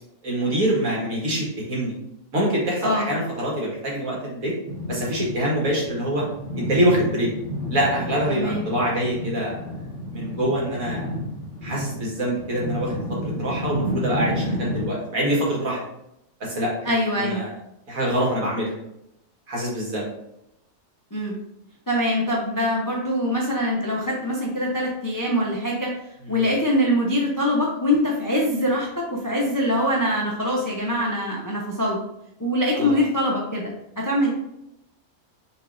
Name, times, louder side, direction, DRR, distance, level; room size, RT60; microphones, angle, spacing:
voice 1, 0.2-2.0 2.3-4.5 4.9-6.3 6.5-7.3 7.7-9.7 10.1-11.1 11.6-12.9 13.2-15.8 16.4-16.7 17.1-17.5 17.9-18.7 19.5-20.1 26.3-26.5 32.7-33.0, equal, 65° right, -4 dB, 1.9 m, -25 dB
sound 1, 4.7-14.9, equal, 30° right, 1.1 m, -31 dB
voice 2, 8.3-8.6 16.8-17.4 21.1-21.4 21.9-25.9 26.3-32.0 32.4-34.3, equal, 25° left, -3 dB, 0.4 m, -23 dB
6.3 x 3.3 x 2.5 m, 0.83 s
omnidirectional pair, 1.6 m